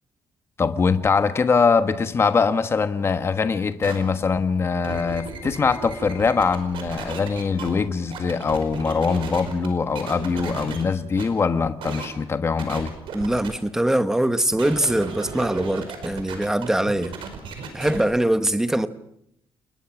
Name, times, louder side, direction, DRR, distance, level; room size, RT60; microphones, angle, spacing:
voice 1, 0.6-12.9, left 5 dB, 25° left, 1.3 m, -22 dB
sound 1, 3.8-4.0 4.6-7.7 8.1-9.7 10.0-10.8 11.2-11.3 11.8-12.1 12.6-13.5 14.5-18.0, right 5 dB, 65° right, 5.1 m, -35 dB
voice 2, 13.1-17.2 17.7-18.9, right 1 dB, 5° right, 1.0 m, -22 dB
30.0 x 21.0 x 6.1 m
cardioid pair, 170°, 10 cm